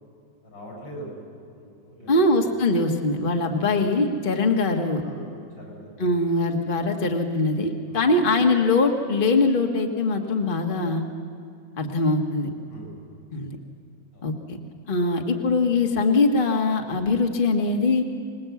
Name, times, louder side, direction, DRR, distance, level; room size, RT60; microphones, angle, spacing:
voice 1, 0.4-2.4 3.0-3.1 3.4-3.6 5.0-6.0 7.9-8.1 12.7-12.9 14.1-14.3, right 1 dB, 85° left, -1 dB, 8.2 m, -42 dB
voice 2, 2.1-5.0 6.0-11.0 11.8-12.5 13.3-13.6 14.2-14.6 14.9-18.1, left 3 dB, 30° left, 3 dB, 1.6 m, -22 dB
26.0 x 20.5 x 8.4 m, 2.4 s
omnidirectional pair, 1.9 m